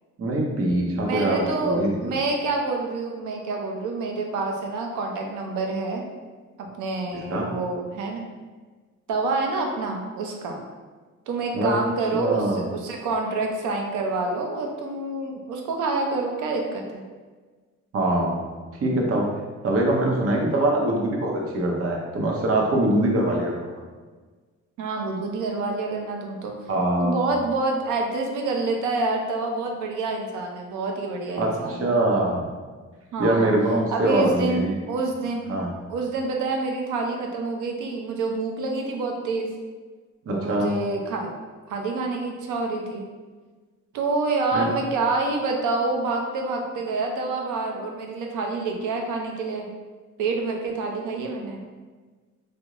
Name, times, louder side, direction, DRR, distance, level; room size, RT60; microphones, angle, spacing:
voice 1, 0.2-2.1 7.3-7.5 11.5-11.7 12.1-12.6 17.9-18.4 18.8-19.3 19.6-23.7 26.7-27.2 31.4-32.5 33.2-34.8 35.5-35.7 40.3-40.7 44.5-44.7, right 1 dB, 50° right, -1 dB, 0.8 m, -23 dB
voice 2, 1.0-6.1 6.6-8.2 9.1-10.6 11.3-17.0 24.8-26.5 27.0-31.9 33.1-33.5 33.9-35.5 35.9-39.5 40.3-41.3 41.7-43.0 43.9-49.7 50.2-51.6, right 3 dB, 80° right, 1 dB, 0.6 m, -27 dB
3.6 x 2.1 x 2.9 m, 1.4 s
cardioid pair, 90°, 30 cm